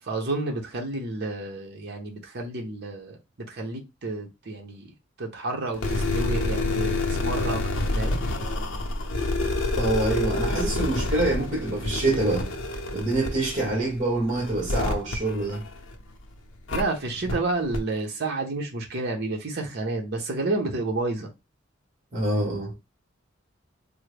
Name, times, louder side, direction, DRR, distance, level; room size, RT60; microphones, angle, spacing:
voice 1, 0.0-4.9 5.2-8.2 16.7-21.3, right 2 dB, 55° right, 0.8 m, -30 dB
sound 1, 5.7-16.1 16.7-16.8 17.3-17.4 17.7-17.8, left 2 dB, 85° left, 0.6 m, -28 dB
voice 2, 9.7-12.5 12.9-15.6 22.1-22.7, right 2 dB, 40° right, 1.3 m, -26 dB
3.5 x 2.1 x 3.3 m
head